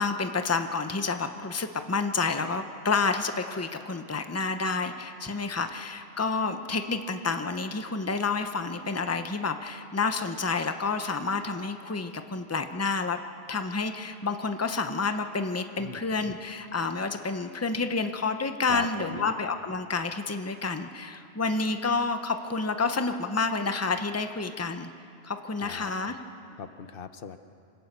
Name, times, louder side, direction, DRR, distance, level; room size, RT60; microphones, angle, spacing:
voice 1, 0.0-13.2 13.5-24.9 25.2-26.2, left 4 dB, 15° left, 8 dB, 0.8 m, -29 dB
voice 2, 18.7-19.3 25.6-25.9 26.6-27.4, left 6 dB, 65° left, 10 dB, 1.0 m, -39 dB
26.0 x 16.5 x 6.8 m, 2.5 s
omnidirectional pair, 1.0 m